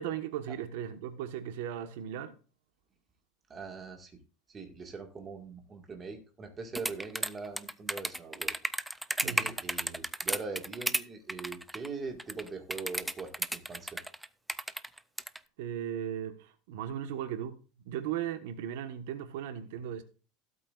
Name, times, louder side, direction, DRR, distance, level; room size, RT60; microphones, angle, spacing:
voice 1, 0.0-2.3 9.2-9.5 15.6-17.5 17.8-20.0, right 10 dB, 80° right, 1.3 m, -37 dB
voice 2, 3.5-4.2 4.5-8.5 9.2-14.0, right 4 dB, 20° right, 1.8 m, -42 dB
sound 1, 6.7-11.0 11.3-11.9 12.2-15.4, right 1 dB, 5° right, 0.4 m, -33 dB
16.0 x 8.4 x 2.5 m
cardioid pair, 160°, 0 cm